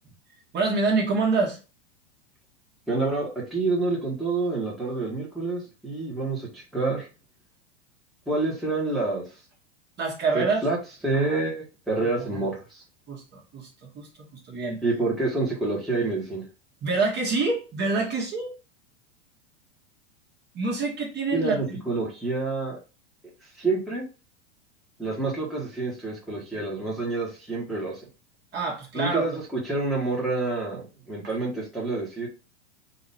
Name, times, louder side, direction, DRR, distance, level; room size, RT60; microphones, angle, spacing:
voice 1, 0.5-1.6 10.0-10.6 11.1-11.4 12.2-12.4 13.1-14.8 16.8-18.5 20.5-21.8 28.5-29.4, right 3 dB, 30° right, -1 dB, 1.6 m, -27 dB
voice 2, 2.9-7.1 8.3-9.2 10.3-10.8 11.0-12.8 14.8-16.5 21.3-22.7 23.6-24.0 25.0-28.0 28.9-32.3, right 3 dB, ahead, -5 dB, 1.5 m, -28 dB
4.1 x 2.9 x 4.1 m, 0.32 s
hypercardioid pair, 125°, 36 cm